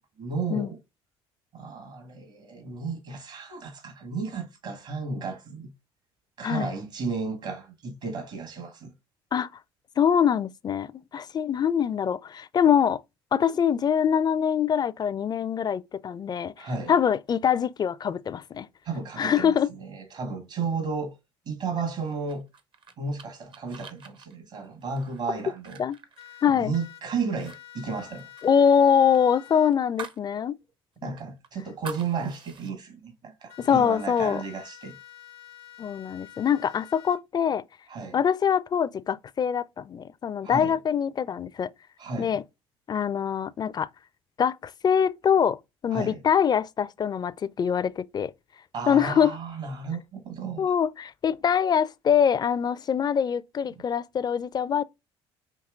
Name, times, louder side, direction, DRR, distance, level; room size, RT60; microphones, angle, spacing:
voice 1, 0.2-0.8 1.5-5.7 6.4-8.9 16.6-16.9 18.8-21.2 21.4-22.4 23.0-25.8 26.5-28.3 31.0-35.0 37.9-38.2 40.4-40.8 42.0-42.4 45.9-46.2 48.7-50.7, right 4 dB, 60° right, 1.5 m, -33 dB
voice 2, 10.0-13.0 13.3-18.7 19.2-19.7 25.8-26.0 26.4-26.7 28.4-30.6 31.0-31.1 33.6-34.4 35.8-37.6 38.1-41.7 42.2-42.4 42.9-43.9 44.4-48.3 48.9-49.4 50.6-54.8, left 8 dB, 30° left, 0.4 m, -24 dB
sound 1, 22.3-26.9 27.2-27.6 27.8-30.3 30.6-30.7 31.2-32.7, right 5 dB, 40° right, 0.7 m, -45 dB
sound 2, 26.2-27.0 27.4-29.7 33.5-37.2, left 13 dB, 85° left, 0.8 m, -48 dB
5.7 x 2.8 x 2.4 m
hypercardioid pair, 60°, 13 cm